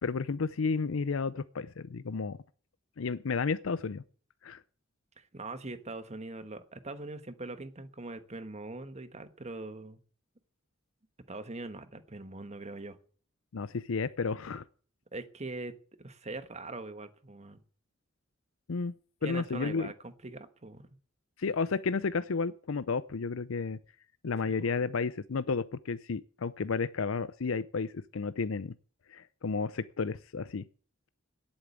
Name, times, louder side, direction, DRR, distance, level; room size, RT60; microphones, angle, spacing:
voice 1, 0.0-2.4 3.0-4.0 4.4-4.6 13.5-14.6 18.7-18.9 19.2-19.9 21.4-23.8 24.2-28.8 29.1-30.7, left 4 dB, 85° left, 0.6 m, -32 dB
voice 2, 5.2-10.0 11.3-13.0 15.1-17.6 19.2-21.0 24.5-24.7, right 2 dB, 35° right, 1.3 m, -42 dB
10.5 x 8.7 x 9.6 m
head